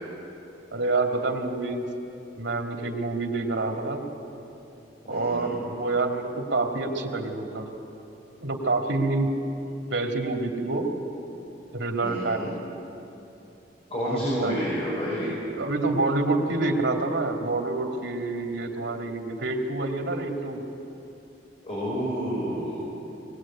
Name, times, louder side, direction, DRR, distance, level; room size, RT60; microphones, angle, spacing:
voice 1, 0.7-1.8 2.4-4.0 5.1-7.7 8.4-9.4 9.9-10.9 11.7-12.5 14.1-14.5 15.6-20.6, right 2 dB, 90° right, 2 dB, 2.7 m, -27 dB
voice 2, 5.1-5.5 12.0-12.5 13.9-15.3 21.6-22.8, equal, 35° left, -7 dB, 6.4 m, -29 dB
22.5 x 19.5 x 8.8 m, 2.9 s
head